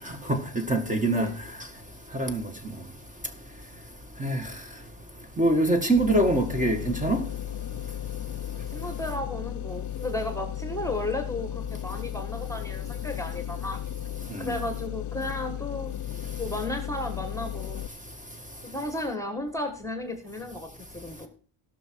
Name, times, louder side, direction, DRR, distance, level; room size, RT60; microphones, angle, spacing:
voice 1, 0.7-1.3 2.2-2.4 4.2-4.4 5.4-7.2 14.4-14.5, right 1 dB, 15° right, 1.7 m, -23 dB
sound 1, 6.0-17.9, left 11 dB, 40° left, 0.4 m, -35 dB
voice 2, 8.7-13.8 14.4-15.9 16.4-17.8 18.6-20.7 20.9-21.3, left 1 dB, 5° left, 1.5 m, -34 dB
17.5 x 6.2 x 4.6 m
cardioid pair, 125°, 48 cm